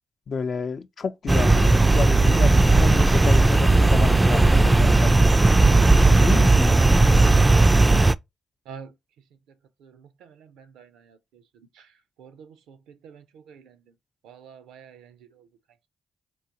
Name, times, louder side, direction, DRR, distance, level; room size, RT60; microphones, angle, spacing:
voice 1, 0.3-5.3 6.1-6.8, left 5 dB, 60° left, 0.6 m, -30 dB
sound 1, 1.3-8.1, right 2 dB, 20° right, 0.3 m, -16 dB
voice 2, 9.8-13.9 14.2-15.5, right 7 dB, 85° right, 0.5 m, -48 dB
3.9 x 2.8 x 2.8 m
supercardioid pair, 45°, 0 cm